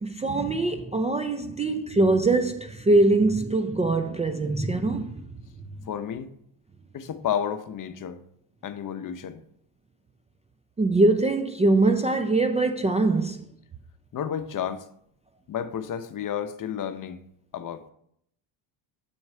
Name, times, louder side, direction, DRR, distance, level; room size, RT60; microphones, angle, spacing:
voice 1, 0.0-5.2 10.8-13.4, right 2 dB, 15° right, 0.4 m, -23 dB
voice 2, 5.9-6.3 6.9-8.2 8.6-9.4 14.1-14.8 15.5-17.2 17.5-17.8, left 9 dB, 40° left, 0.7 m, -31 dB
7.0 x 4.7 x 5.4 m
supercardioid pair, 80°, 49 cm